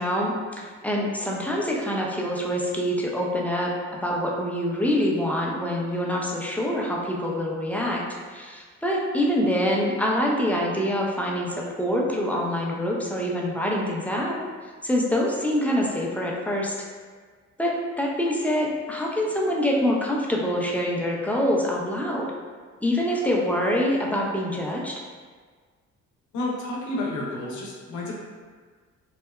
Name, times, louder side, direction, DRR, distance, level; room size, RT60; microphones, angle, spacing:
voice 1, 0.0-3.7 4.0-8.0 8.3-14.4 14.8-16.8 17.6-22.3 22.8-25.0, equal, 5° left, -3 dB, 0.3 m, -25 dB
voice 2, 26.3-28.2, left 2 dB, 80° left, -2 dB, 0.6 m, -30 dB
2.7 x 2.1 x 2.2 m, 1.6 s
cardioid pair, 90°, 30 cm